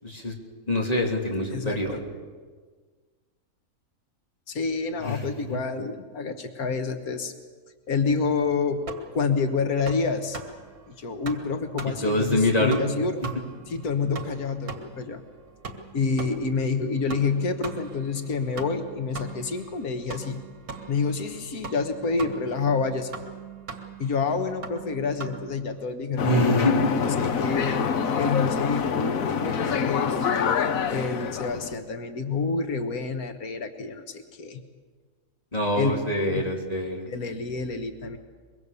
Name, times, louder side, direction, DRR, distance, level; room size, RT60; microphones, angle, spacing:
voice 1, 0.0-0.3 0.7-1.9 5.0-5.6 12.0-12.8 26.2-26.8 35.5-37.0, left 1 dB, 25° left, 0 dB, 3.5 m, -25 dB
voice 2, 1.5-2.0 4.5-7.3 7.9-8.8 9.1-10.4 10.9-13.1 13.7-15.2 15.9-20.4 20.9-23.1 24.0-26.6 27.0-30.3 30.9-34.6 35.8-36.0 36.3-36.5 37.1-38.2, left 4 dB, 90° left, 7 dB, 1.8 m, -28 dB
sound 1, 8.4-25.8, right 4 dB, 85° right, 2.4 m, -42 dB
sound 2, 26.2-31.8, left 6 dB, 70° left, 1.5 m, -26 dB
24.0 x 23.0 x 6.9 m, 1.5 s
omnidirectional pair, 1.5 m